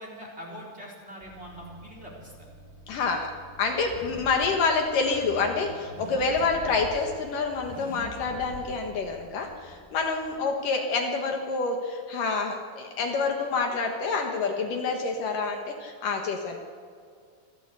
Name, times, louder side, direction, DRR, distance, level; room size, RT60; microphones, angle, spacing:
voice 1, 0.0-2.5, equal, 15° right, -1 dB, 3.8 m, -43 dB
Car / Accelerating revving vroom, 1.2-10.4, equal, 15° left, 4.5 m, -45 dB
voice 2, 2.9-3.3 3.6-16.6, left 4 dB, 65° left, 3 dB, 2.9 m, -27 dB
26.0 x 14.0 x 8.3 m, 2.2 s
omnidirectional pair, 4.3 m